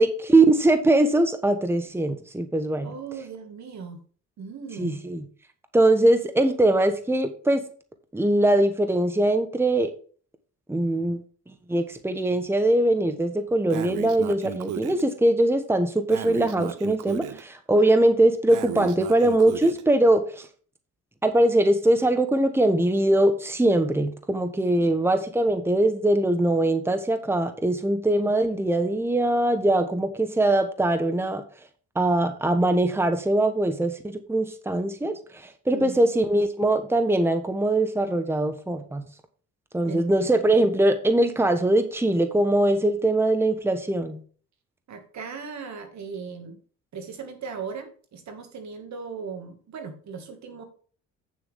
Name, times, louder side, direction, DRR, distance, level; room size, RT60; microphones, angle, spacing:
voice 1, 0.0-2.9 4.8-5.2 5.7-7.6 8.1-9.9 10.7-11.2 11.7-20.5 21.2-31.4 31.9-39.0 39.7-44.2, right 1 dB, 10° right, 8 dB, 1.2 m, -22 dB
voice 2, 2.8-4.0 4.4-5.0 28.1-28.2 35.7-36.0 39.9-40.3 44.9-46.6 46.9-50.6, right 5 dB, 65° right, 6 dB, 2.2 m, -38 dB
Breathing, 13.7-15.0 16.1-17.4 18.5-19.8, right 12 dB, 85° right, 0.7 m, -35 dB
8.6 x 7.2 x 3.6 m, 0.43 s
cardioid pair, 90°, 30 cm